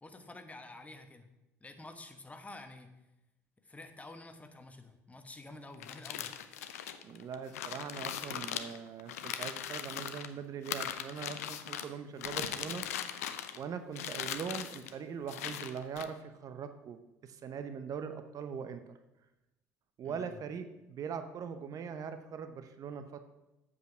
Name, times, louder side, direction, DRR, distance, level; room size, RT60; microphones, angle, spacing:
voice 1, 0.0-1.3 1.6-2.9 3.6-6.3 20.0-20.4, left 2 dB, 15° left, 7 dB, 1.3 m, -49 dB
sound 1, 5.7-10.3 10.6-11.9 12.2-13.6 13.9-14.9 15.3-16.0, left 10 dB, 75° left, 0.6 m, -39 dB
voice 2, 7.0-12.9 13.5-18.8 20.0-23.2, right 6 dB, 45° right, 9 dB, 0.8 m, -41 dB
8.2 x 6.8 x 5.9 m, 0.97 s
figure-of-eight pair, 55°, 8 cm